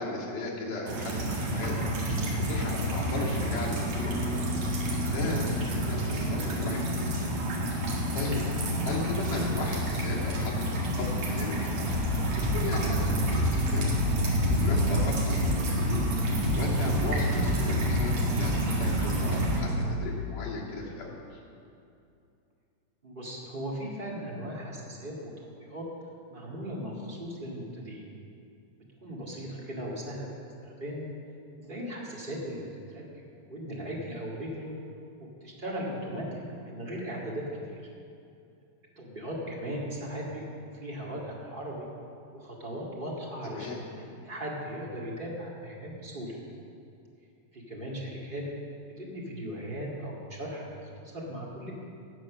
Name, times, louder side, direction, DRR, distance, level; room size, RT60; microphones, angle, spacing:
voice 1, 0.0-1.8 2.4-4.5 5.1-7.3 8.1-8.4 8.8-11.8 12.4-13.9 14.5-16.1 16.6-21.4 43.4-43.8, left 3 dB, 65° left, -6 dB, 4.0 m, -36 dB
sound 1, 0.9-19.6, equal, 65° right, 3.3 m, -29 dB
sound 2, 11.9-19.9, right 1 dB, 45° right, 2.1 m, -31 dB
voice 2, 23.0-25.3 25.6-25.8 26.3-28.0 29.0-30.3 30.6-31.0 31.6-32.6 32.9-33.0 33.4-34.7 35.4-37.8 38.9-41.9 42.3-46.4 47.5-48.4 49.0-51.7, equal, 20° right, -4 dB, 1.6 m, -38 dB
16.5 x 7.8 x 6.3 m, 2.6 s
omnidirectional pair, 4.1 m